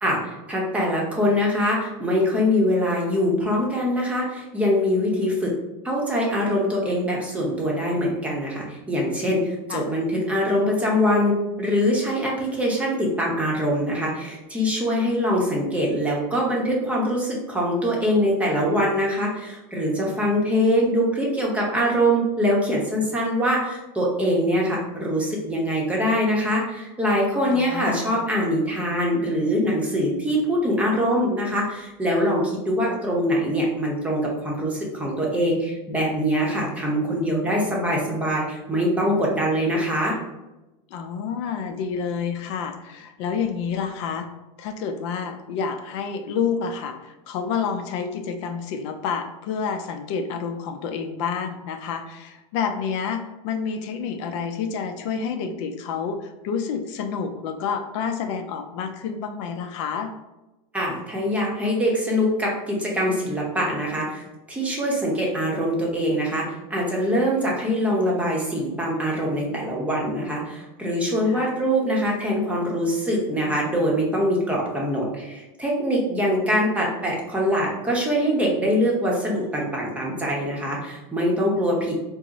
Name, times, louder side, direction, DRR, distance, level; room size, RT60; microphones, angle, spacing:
voice 1, 0.0-5.5 5.8-40.2 60.7-81.9, equal, 10° right, -3 dB, 0.8 m, -23 dB
voice 2, 27.5-28.2 40.9-44.3 44.6-60.1 71.3-71.5, left 6 dB, 60° left, 7 dB, 0.4 m, -29 dB
3.5 x 2.0 x 4.0 m, 1.0 s
supercardioid pair, 140°, 17 cm